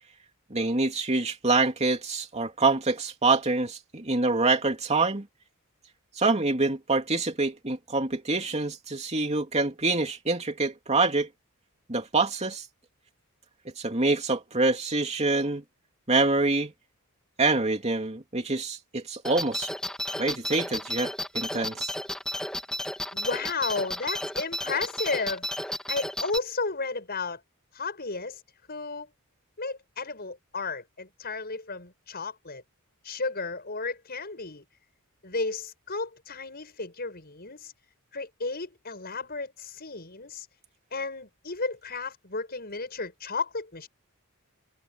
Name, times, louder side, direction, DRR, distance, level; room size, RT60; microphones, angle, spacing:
voice 1, 0.5-5.3 6.2-11.3 11.9-12.6 13.8-15.6 16.1-16.7 17.4-19.7 20.2-21.9, right 3 dB, 30° right, 3.0 m, -26 dB
sound 1, 19.2-26.4, left 1 dB, 5° left, 2.2 m, -33 dB
voice 2, 23.1-25.5 25.9-27.4 27.7-28.4 28.7-29.1 29.6-32.6 33.0-34.6 35.2-37.7 38.1-40.5 40.9-43.9, left 3 dB, 45° left, 6.9 m, -33 dB
head